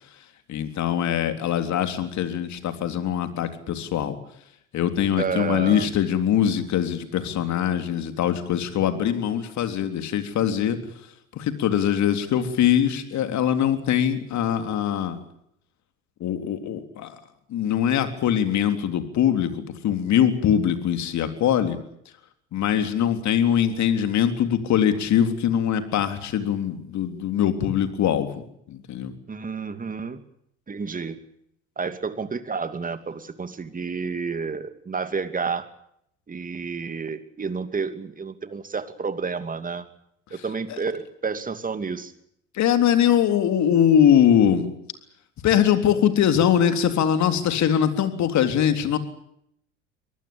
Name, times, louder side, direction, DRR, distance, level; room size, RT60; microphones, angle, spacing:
voice 1, 0.5-4.2 4.7-10.8 11.3-15.2 16.2-17.2 17.5-19.5 19.8-21.8 22.5-28.4 28.7-29.1 40.3-40.4 40.7-40.8 42.5-44.7 45.4-49.0, left 9 dB, 50° left, 8 dB, 3.6 m, -22 dB
voice 2, 5.1-5.9 29.3-30.2 30.7-31.2 31.8-35.7 36.3-39.9 40.3-42.1, right 5 dB, 25° right, 10 dB, 2.7 m, -30 dB
23.5 x 19.5 x 8.8 m, 0.73 s
hypercardioid pair, 70°, 36 cm